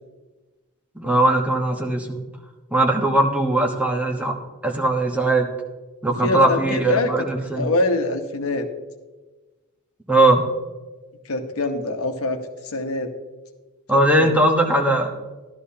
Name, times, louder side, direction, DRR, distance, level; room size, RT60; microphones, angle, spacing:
voice 1, 0.9-2.2 2.7-4.3 4.6-5.5 6.0-7.7 10.1-10.5 13.9-15.1, right 1 dB, 5° right, 1 dB, 1.1 m, -19 dB
voice 2, 6.2-7.2 7.5-8.7 11.2-13.1 13.9-14.3, left 2 dB, 80° left, 5 dB, 1.1 m, -24 dB
13.5 x 12.0 x 2.8 m, 1.2 s
head